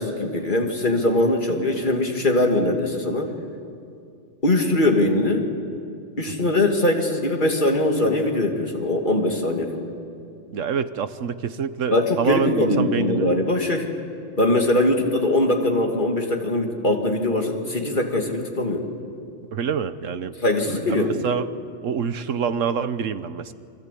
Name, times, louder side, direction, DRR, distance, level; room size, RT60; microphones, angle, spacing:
voice 1, 0.0-3.3 4.4-5.4 6.2-9.9 11.9-13.9 14.4-18.8 20.4-21.2, left 1 dB, 40° left, 2 dB, 2.6 m, -21 dB
voice 2, 10.5-13.3 19.5-20.4 20.7-21.5 21.8-23.5, right 7 dB, 85° right, 12 dB, 1.3 m, -26 dB
28.5 x 24.0 x 8.5 m, 2.4 s
omnidirectional pair, 1.3 m